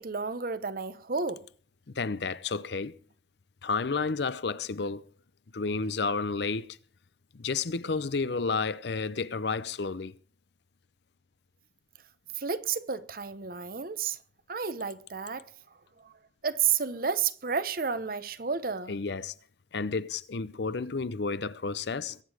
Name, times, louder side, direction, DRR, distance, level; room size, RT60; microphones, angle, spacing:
voice 1, 0.0-1.4 12.4-14.2 14.5-15.5 16.0-16.1 16.4-19.0, right 6 dB, 50° right, 0.8 m, -31 dB
voice 2, 1.9-3.0 3.6-5.1 5.5-6.8 7.3-10.1 18.9-19.3 19.7-22.2, left 4 dB, 65° left, 0.6 m, -31 dB
22.0 x 8.4 x 4.9 m
head